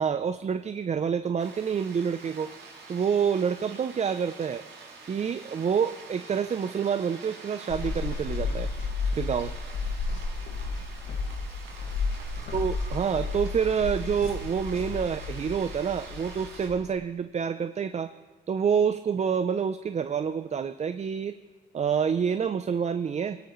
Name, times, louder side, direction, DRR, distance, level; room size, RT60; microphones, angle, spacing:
voice 1, 0.0-2.5 2.9-4.6 5.1-8.7 9.1-9.6 12.5-18.1 18.5-21.3 21.7-23.4, right 7 dB, 35° right, 10 dB, 0.5 m, -27 dB
sound 1, 1.4-16.7, right 4 dB, 75° right, 4.6 m, -46 dB
sound 2, 7.7-16.9, left 4 dB, 85° left, 1.9 m, -33 dB
21.5 x 17.5 x 3.1 m, 1.4 s
cardioid pair, 90°, 20 cm